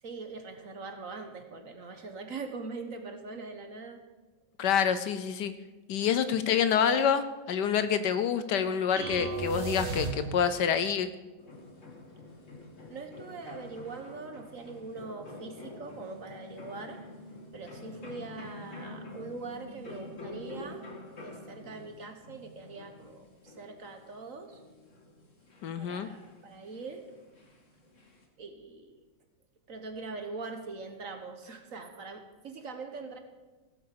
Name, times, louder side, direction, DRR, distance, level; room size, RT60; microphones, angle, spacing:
voice 1, 0.0-4.0 12.9-17.1 17.5-24.6 25.2-25.3 25.8-27.1 28.4-29.1 29.7-33.2, right 3 dB, 50° right, 6 dB, 1.4 m, -42 dB
voice 2, 4.6-5.5 5.9-11.1 25.6-26.1, left 7 dB, 70° left, 12 dB, 1.2 m, -27 dB
sound 1, 9.0-10.7, right 3 dB, 30° right, 2.3 m, -34 dB
Fire Escape Banging, 11.4-28.2, left 2 dB, 40° left, 2.2 m, -48 dB
17.0 x 8.1 x 6.8 m, 1.2 s
omnidirectional pair, 2.0 m